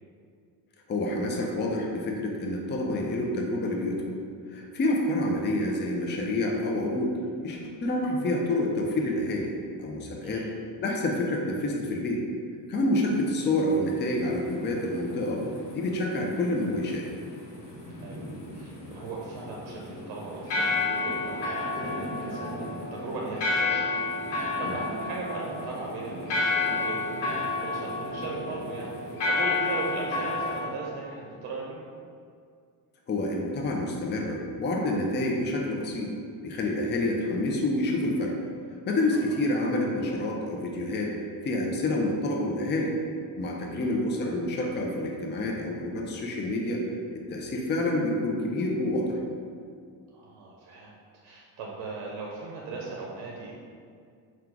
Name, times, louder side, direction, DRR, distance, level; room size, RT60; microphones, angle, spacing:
voice 1, 0.9-4.1 4.5-7.1 7.4-9.5 9.8-10.5 10.8-12.2 12.7-15.4 15.7-17.1 24.6-24.8 33.1-36.1 36.4-38.3 38.9-41.1 41.4-42.9 43.4-46.9 47.1-49.2, left 1 dB, 25° left, 0 dB, 0.5 m, -28 dB
voice 2, 10.2-10.6 18.0-18.2 18.5-28.9 29.3-31.8 39.3-39.4 43.7-43.9 50.1-51.0 51.2-53.5, right 3 dB, 70° right, -3 dB, 0.7 m, -38 dB
sound 1, 12.9-30.6, left 3 dB, 80° left, 1.2 m, -32 dB
3.8 x 2.3 x 4.5 m, 2.2 s
cardioid pair, 105°, 41 cm